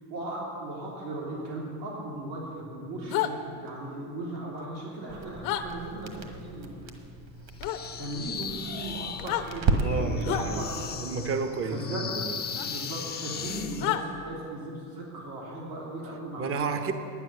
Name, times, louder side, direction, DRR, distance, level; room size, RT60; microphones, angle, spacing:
voice 1, 0.1-6.8 8.0-10.9 11.6-12.1 12.6-16.7, right 1 dB, 85° right, -4 dB, 3.1 m, -37 dB
sound 1, 3.1-3.3 5.4-5.6 7.6-7.8 9.1-9.5 10.2-10.5 12.5-12.7 13.8-14.0, left 13 dB, 70° left, 1.0 m, -29 dB
Crackle, 5.1-10.4, right 4 dB, 50° right, 1.6 m, -33 dB
sound 2, 7.6-13.9, left 7 dB, 20° left, 0.6 m, -38 dB
voice 2, 9.8-10.7 11.0-12.4 16.4-16.9, right 4 dB, 25° right, 8 dB, 0.8 m, -31 dB
10.5 x 9.1 x 6.6 m, 2.4 s
supercardioid pair, 115°, 49 cm